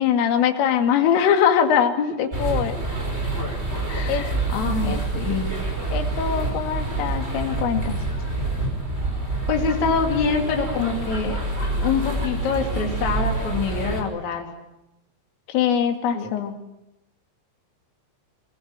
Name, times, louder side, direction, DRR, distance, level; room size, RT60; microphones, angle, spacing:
voice 1, 0.0-2.8 4.1-4.2 4.8-5.0 5.9-8.0 15.5-16.6, left 8 dB, 85° left, 6 dB, 4.8 m, -22 dB
sound 1, 2.3-14.0, right 2 dB, 15° right, 4.9 m, -27 dB
voice 2, 3.9-5.5 9.5-14.5 16.1-16.3, left 5 dB, 40° left, 2 dB, 4.2 m, -25 dB
24.0 x 22.0 x 9.0 m, 0.90 s
omnidirectional pair, 5.7 m